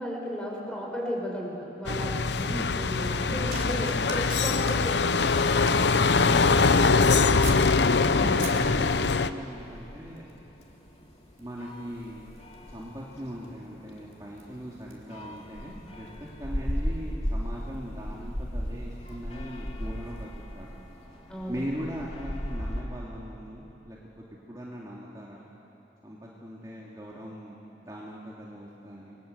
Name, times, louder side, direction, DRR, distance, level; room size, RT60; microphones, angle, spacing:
voice 1, 0.0-5.3 8.0-8.5 21.3-21.6, equal, 5° left, -2 dB, 5.7 m, -35 dB
sound 1, 1.9-9.3, left 4 dB, 75° left, 0.8 m, -23 dB
voice 2, 2.5-2.8 8.0-10.2 11.4-12.3 12.7-16.1 16.4-20.8 21.5-25.5 26.0-29.2, equal, 20° right, -5 dB, 2.7 m, -40 dB
sound 2, 3.5-7.7 8.1-9.4 10.2-10.4 10.7-20.4 21.1-21.2, right 6 dB, 50° right, 4.2 m, -48 dB
sound 3, 5.3-22.8, equal, 35° left, 2.6 m, -38 dB
29.5 x 24.0 x 8.1 m, 2.9 s
head